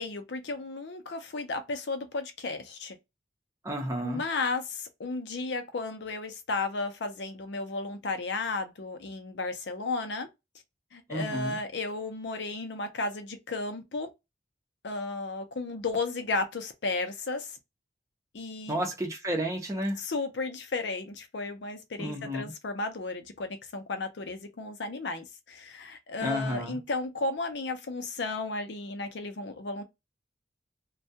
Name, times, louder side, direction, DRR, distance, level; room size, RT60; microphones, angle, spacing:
voice 1, 0.0-3.0 4.0-10.3 10.9-14.1 14.8-17.6 18.3-18.8 20.0-29.8, left 3 dB, 75° left, 0.5 m, -34 dB
voice 2, 3.6-4.2 11.1-11.6 18.7-20.0 22.0-22.5 26.2-26.8, equal, 15° right, 0.6 m, -31 dB
2.3 x 2.1 x 2.7 m
head